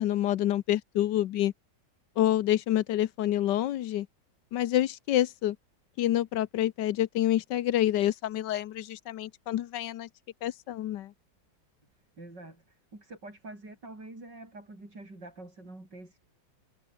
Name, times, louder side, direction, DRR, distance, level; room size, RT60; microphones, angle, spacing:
voice 1, 0.0-1.5 2.2-4.1 4.5-5.6 6.0-10.1 10.4-11.1, left 13 dB, 75° left, 1.4 m, -27 dB
voice 2, 12.2-16.2, right 2 dB, 70° right, 8.6 m, -46 dB
omnidirectional pair, 2.0 m